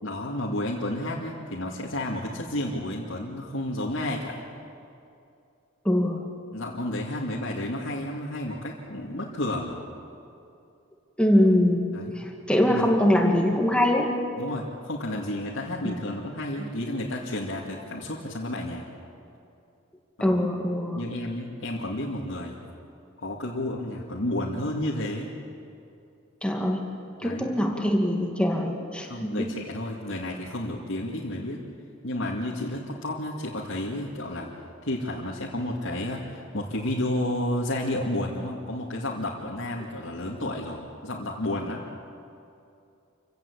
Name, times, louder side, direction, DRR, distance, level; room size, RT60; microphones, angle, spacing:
voice 1, 0.0-4.4 6.5-9.8 11.9-12.2 12.6-12.9 14.4-18.8 20.2-20.4 21.0-22.6 23.2-25.3 27.2-27.5 29.0-31.6 32.0-34.5 34.8-41.9, left 1 dB, 80° left, -4 dB, 2.3 m, -31 dB
voice 2, 5.8-6.3 11.2-14.1 15.8-16.0 20.2-21.0 26.4-26.8 27.2-29.5, left 1 dB, 5° left, 2 dB, 2.2 m, -23 dB
28.0 x 16.0 x 8.5 m, 2.6 s
head